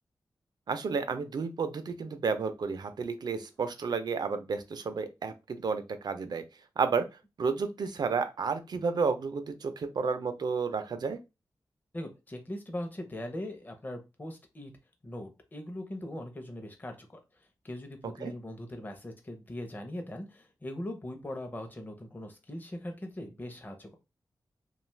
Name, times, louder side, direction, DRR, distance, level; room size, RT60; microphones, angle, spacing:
voice 1, 0.7-6.4 6.8-7.1 7.4-11.2 18.2-18.3, right 5 dB, 65° right, 10 dB, 0.4 m, -31 dB
voice 2, 11.9-14.7 15.0-17.2 17.6-24.0, left 1 dB, 25° left, 4 dB, 0.6 m, -40 dB
2.5 x 2.3 x 3.1 m, 0.26 s
cardioid pair, 70°, 8 cm